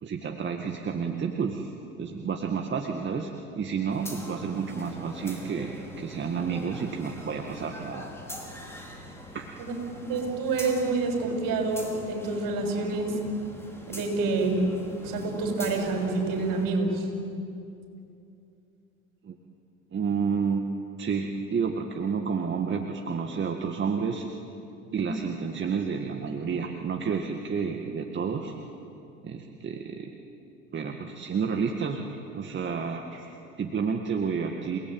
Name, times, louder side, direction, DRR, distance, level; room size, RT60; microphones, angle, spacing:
voice 1, 0.0-1.7 2.0-8.1 9.3-9.5 19.2-19.4 19.9-20.7 21.0-24.3 24.9-28.6 29.2-30.1 30.7-34.8, right 6 dB, 25° right, 3 dB, 1.9 m, -30 dB
sound 1, 3.9-16.7, equal, 5° left, 5.4 m, -43 dB
voice 2, 9.6-13.2 13.9-14.6 15.0-17.0 24.9-25.1, right 3 dB, 50° right, 3 dB, 7.0 m, -28 dB
28.5 x 18.5 x 9.3 m, 2.7 s
hypercardioid pair, 85°, 42 cm